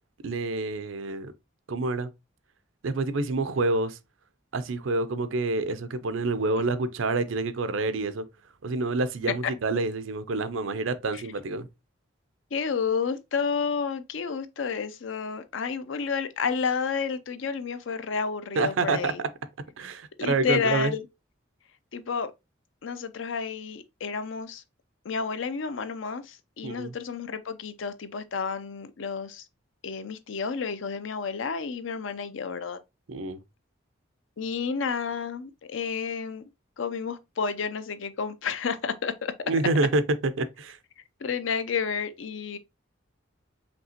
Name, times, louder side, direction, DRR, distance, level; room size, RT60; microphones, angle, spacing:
voice 1, 0.2-1.3 1.7-2.1 2.8-4.0 4.5-8.2 8.6-11.7 18.5-19.3 19.8-20.9 26.6-26.9 33.1-33.4 39.5-40.8, right 3 dB, 85° right, 0.5 m, -27 dB
voice 2, 12.5-19.2 20.2-21.0 21.9-22.3 22.8-24.6 25.0-29.4 29.8-32.8 34.4-36.4 36.8-39.3 41.2-42.6, left 5 dB, 75° left, 0.5 m, -30 dB
5.2 x 2.9 x 2.8 m
head